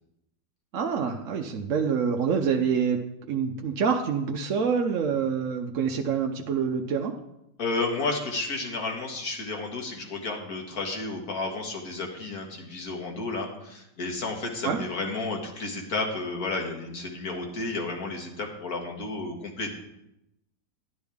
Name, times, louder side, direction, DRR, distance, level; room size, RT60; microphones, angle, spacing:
voice 1, 0.7-7.2 14.6-14.8, right 6 dB, 60° right, 3 dB, 0.9 m, -26 dB
voice 2, 7.6-19.7, left 3 dB, 60° left, 2 dB, 2.0 m, -32 dB
11.5 x 9.7 x 3.5 m, 0.86 s
omnidirectional pair, 1.8 m